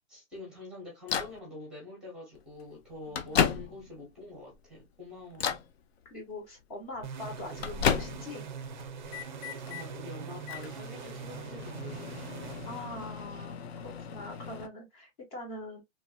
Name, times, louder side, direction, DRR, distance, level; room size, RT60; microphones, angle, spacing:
voice 1, 0.1-5.6 9.7-12.1, left 2 dB, ahead, 0.9 m, -46 dB
Microwave oven, 1.1-1.4 2.4-2.5 2.9-4.0 4.5-4.9 5.3-5.7 6.9-8.4 8.8-9.9 10.4-14.7, left 7 dB, 55° left, 0.5 m, -33 dB
voice 2, 6.0-8.5 12.6-13.6 14.0-15.8, left 2 dB, 30° left, 1.0 m, -43 dB
sound 1, 7.0-13.5, right 6 dB, 35° right, 0.5 m, -43 dB
3.0 x 2.4 x 2.3 m
hypercardioid pair, 165°, 39 cm